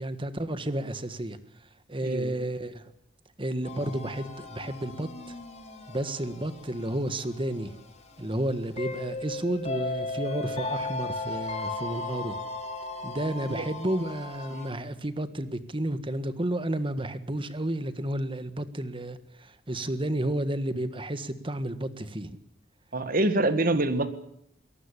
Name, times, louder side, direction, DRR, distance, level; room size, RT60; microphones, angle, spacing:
voice 1, 0.0-1.4 1.9-2.8 3.4-5.4 5.9-7.8 8.2-12.4 13.0-22.4, right 1 dB, 30° right, 12 dB, 1.6 m, -31 dB
voice 2, 2.0-2.4 13.5-13.7 14.5-14.7 22.9-24.1, right 2 dB, 50° right, 11 dB, 1.8 m, -26 dB
sound 1, 3.6-14.7, left 2 dB, 40° left, 3.3 m, -37 dB
23.5 x 19.0 x 8.4 m, 0.71 s
head